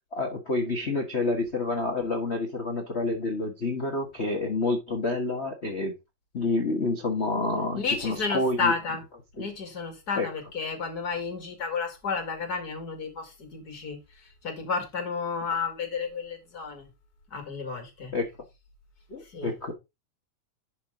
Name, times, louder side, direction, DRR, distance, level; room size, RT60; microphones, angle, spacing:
voice 1, 0.1-6.0 6.3-8.7 9.4-9.5 10.2-10.3 18.1-18.3 19.1-19.7, left 2 dB, 60° left, 0.6 m, -28 dB
voice 2, 7.8-9.0 9.4-14.0 14.4-16.9 17.3-18.1 19.3-19.5, left 5 dB, 35° left, 2.2 m, -31 dB
11.0 x 5.2 x 3.8 m
omnidirectional pair, 3.6 m